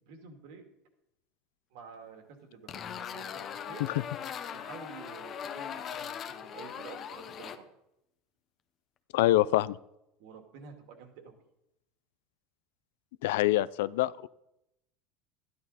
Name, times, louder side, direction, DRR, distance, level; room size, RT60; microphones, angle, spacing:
voice 1, 0.0-0.6 1.7-2.9 3.1-3.9 4.5-7.7 10.2-11.3, right 5 dB, 60° right, 5 dB, 2.3 m, -49 dB
sound 1, 2.7-7.6, left 8 dB, 25° left, 0.7 m, -40 dB
voice 2, 9.1-9.8 13.2-14.3, left 15 dB, 80° left, 19 dB, 0.4 m, -25 dB
13.0 x 11.5 x 4.2 m, 0.83 s
cardioid pair, 175°, 0 cm